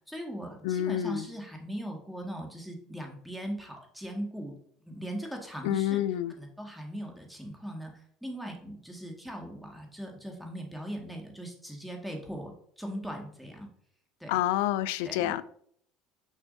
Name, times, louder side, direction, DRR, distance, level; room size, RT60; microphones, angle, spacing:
voice 1, 0.1-4.5 4.9-6.0 6.4-13.7 14.2-14.4 15.0-15.3, equal, ahead, 1.8 m, -39 dB
voice 2, 0.6-1.3 5.6-6.3 14.3-15.4, left 12 dB, 75° left, 0.3 m, -28 dB
6.1 x 5.9 x 2.7 m
hypercardioid pair, 80°, 0 cm